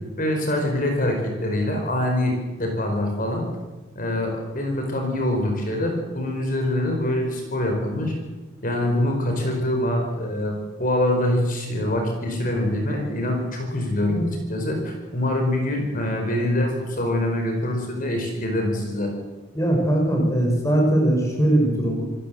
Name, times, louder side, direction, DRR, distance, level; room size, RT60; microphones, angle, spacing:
voice 1, 0.2-3.5 3.9-8.1 8.6-19.1, left 1 dB, 40° left, 3 dB, 4.9 m, -24 dB
voice 2, 19.5-22.0, right 1 dB, 15° left, 0 dB, 5.1 m, -20 dB
27.5 x 15.0 x 7.8 m, 1.2 s
head